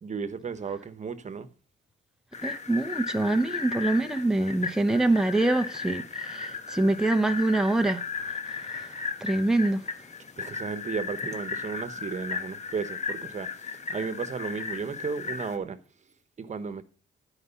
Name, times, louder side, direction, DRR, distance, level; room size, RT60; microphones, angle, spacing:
voice 1, 0.0-1.5 10.4-15.8 16.4-16.8, right 5 dB, 40° right, 1.2 m, -34 dB
sound 1, 2.3-15.6, left 5 dB, 40° left, 1.2 m, -36 dB
voice 2, 2.4-8.9 9.2-9.9, right 2 dB, 5° right, 0.8 m, -25 dB
11.0 x 4.9 x 6.9 m
cardioid pair, 85°, 18 cm